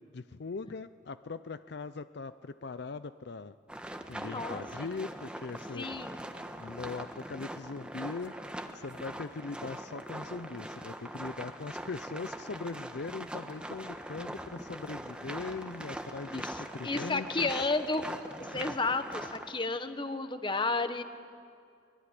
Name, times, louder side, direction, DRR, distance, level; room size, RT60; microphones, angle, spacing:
voice 1, 0.0-3.6 4.1-5.9 6.6-8.4 8.7-17.6 18.5-18.8, left 4 dB, 65° left, 13 dB, 0.5 m, -40 dB
sound 1, 3.7-19.5, right 1 dB, 5° right, 1.3 m, -42 dB
voice 2, 4.2-4.6 5.7-6.2 16.3-18.1 18.4-21.0, left 3 dB, 25° left, 9 dB, 1.2 m, -32 dB
24.0 x 21.5 x 10.0 m, 2.3 s
head